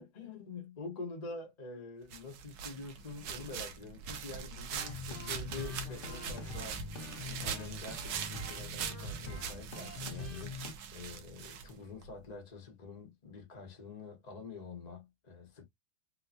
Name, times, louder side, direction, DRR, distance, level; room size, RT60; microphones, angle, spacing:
voice 1, 0.0-15.7, left 3 dB, 25° left, 0.9 m, -47 dB
sound 1, 2.1-12.1, right 6 dB, 70° right, 1.1 m, -42 dB
sound 2, 4.8-10.7, left 2 dB, 75° left, 0.5 m, -44 dB
3.5 x 2.8 x 2.5 m
omnidirectional pair, 2.3 m